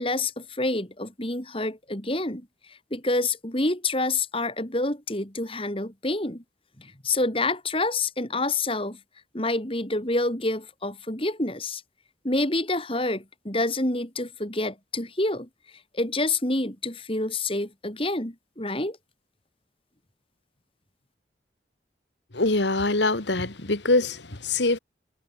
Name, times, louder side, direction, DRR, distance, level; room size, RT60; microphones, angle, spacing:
voice 1, 0.0-6.4 6.8-9.0 9.3-11.8 12.2-15.5 15.9-19.0, left 2 dB, 30° left, 3.7 m, -28 dB
voice 2, 22.3-24.8, left 2 dB, 70° left, 2.2 m, -24 dB
head